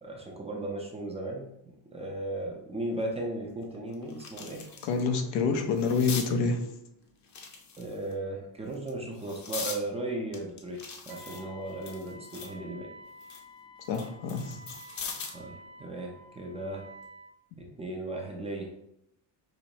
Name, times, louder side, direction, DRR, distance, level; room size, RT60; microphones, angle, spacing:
voice 1, 0.0-4.6 7.8-12.9 15.3-16.9 17.6-18.7, right 1 dB, 15° right, 0 dB, 0.5 m, -36 dB
sound 1, 3.0-3.1 3.6-5.0 5.4-6.3 7.2-8.1 8.7-9.8 10.3-12.6 13.0-15.5 16.8-17.0, left 5 dB, 40° left, 0.8 m, -41 dB
voice 2, 4.8-6.6 13.9-14.6 17.5-17.6, left 4 dB, 80° left, 5 dB, 0.9 m, -27 dB
Wind instrument woodwind instrument, 11.1-17.3, equal, 60° right, 1.2 m, -50 dB
5.2 x 3.1 x 2.9 m, 0.80 s
cardioid pair, 160°, 42 cm